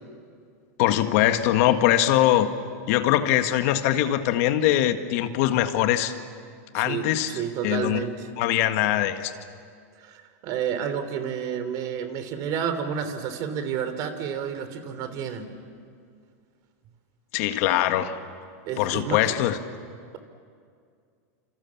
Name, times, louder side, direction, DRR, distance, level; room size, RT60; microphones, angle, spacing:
voice 1, 0.8-2.5 2.9-6.1 6.7-7.3 7.6-8.0 8.4-9.3 17.3-18.2 18.8-19.6, left 12 dB, 60° left, 8 dB, 1.7 m, -22 dB
voice 2, 6.8-8.3 10.0-15.5 18.7-19.4, right 7 dB, 45° right, 10 dB, 3.2 m, -30 dB
29.0 x 27.5 x 7.3 m, 2.2 s
supercardioid pair, 135°, 9 cm